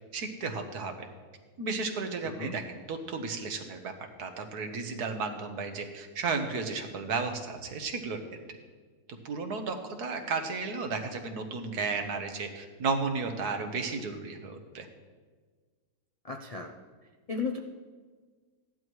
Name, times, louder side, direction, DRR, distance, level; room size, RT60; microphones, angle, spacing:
voice 1, 0.1-1.1 1.6-3.9 4.2-8.2 9.2-14.9, right 4 dB, 80° right, 5 dB, 1.6 m, -33 dB
voice 2, 16.2-16.7 17.3-17.6, left 4 dB, 45° left, 1 dB, 0.4 m, -34 dB
15.5 x 11.5 x 3.1 m, 1.5 s
omnidirectional pair, 1.6 m